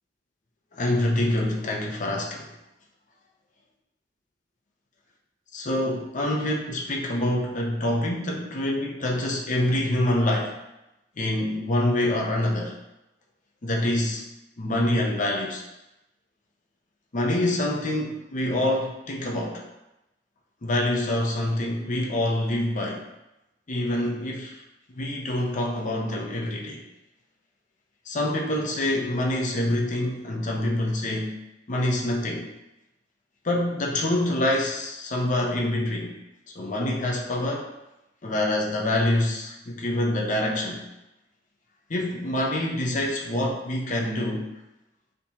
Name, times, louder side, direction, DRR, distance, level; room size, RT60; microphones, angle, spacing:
voice 1, 0.7-2.5 5.5-10.6 11.2-12.8 13.6-14.2 14.6-15.6 17.1-19.6 20.6-23.0 23.7-24.6 24.9-26.8 28.1-31.4 31.7-32.5 33.4-36.1 36.5-37.7 38.2-40.9 41.9-44.5, left 1 dB, 45° left, -1 dB, 0.6 m, -26 dB
6.5 x 2.8 x 2.8 m, 0.93 s
head